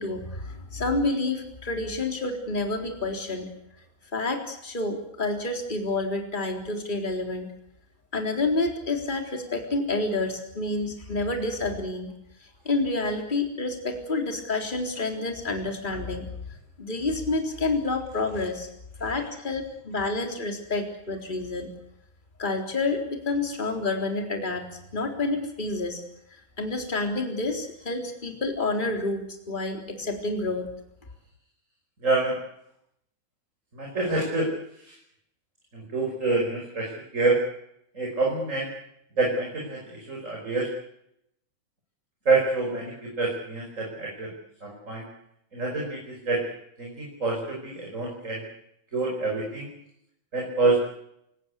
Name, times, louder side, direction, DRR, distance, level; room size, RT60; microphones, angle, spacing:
voice 1, 0.0-3.5 4.1-7.5 8.1-12.1 12.7-16.3 16.8-18.7 19.0-21.7 22.4-24.7 24.9-26.0 26.6-30.7, left 2 dB, 15° left, 3 dB, 3.9 m, -29 dB
voice 2, 32.0-32.4 33.7-34.5 34.8-35.0 35.7-37.4 37.9-38.7 39.2-40.7 42.3-44.3 44.6-45.0 45.5-46.4 46.8-48.4 48.9-49.7 50.3-50.8, right 3 dB, 25° right, -1 dB, 5.4 m, -27 dB
28.0 x 18.0 x 8.4 m, 0.77 s
omnidirectional pair, 3.4 m